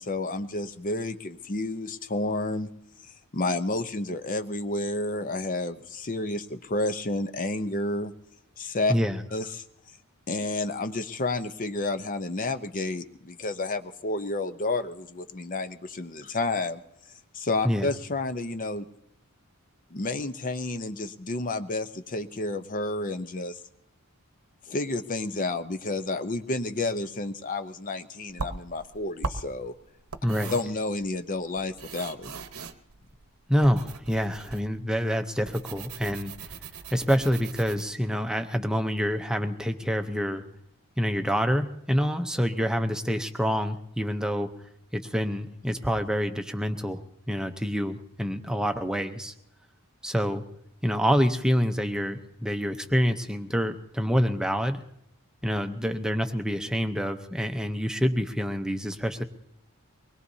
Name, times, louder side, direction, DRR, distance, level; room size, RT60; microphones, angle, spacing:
voice 1, 0.0-2.7 3.3-8.1 8.6-8.9 9.3-9.6 10.3-16.8 17.3-18.9 19.9-23.6 24.7-29.7 30.5-32.3, left 2 dB, 40° left, 9 dB, 0.7 m, -30 dB
voice 2, 8.9-9.2 17.6-17.9 30.2-30.5 33.5-36.6 36.9-40.4 41.0-44.5 44.9-47.0 47.3-49.3 50.0-50.4 50.8-54.8 55.4-59.2, equal, 5° right, 6 dB, 0.7 m, -27 dB
sound 1, 28.3-37.8, right 4 dB, 90° right, 1.0 m, -40 dB
24.0 x 20.5 x 2.7 m, 0.81 s
head